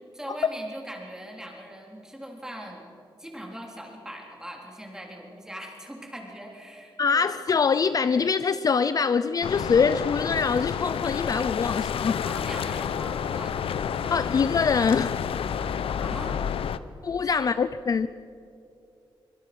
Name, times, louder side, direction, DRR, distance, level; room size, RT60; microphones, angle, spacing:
voice 1, 0.1-2.8 3.2-7.3 12.2-14.2 16.0-16.4 17.2-17.5, equal, 5° right, 0 dB, 3.7 m, -41 dB
voice 2, 7.0-12.2 14.1-15.2 17.0-18.1, left 5 dB, 40° left, 13 dB, 0.5 m, -24 dB
sound 1, 9.4-16.8, left 8 dB, 90° left, 0.8 m, -29 dB
25.0 x 24.5 x 6.1 m, 2.6 s
wide cardioid pair, 170°, 9 cm